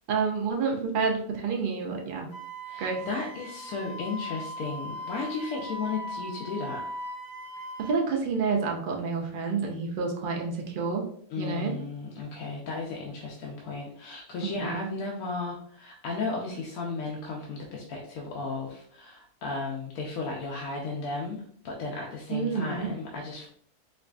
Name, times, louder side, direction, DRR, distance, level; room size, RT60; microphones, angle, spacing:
voice 1, 0.1-2.3 2.8-3.1 7.8-11.0 11.4-11.8 14.4-14.9 22.3-22.9, right 5 dB, 85° right, 1 dB, 0.4 m, -29 dB
Wind instrument woodwind instrument, 2.3-8.0, equal, 55° right, 1.1 m, -39 dB
voice 2, 2.6-6.9 11.3-23.5, left 3 dB, 70° left, -2 dB, 1.0 m, -34 dB
4.8 x 2.4 x 2.3 m, 0.62 s
omnidirectional pair, 1.6 m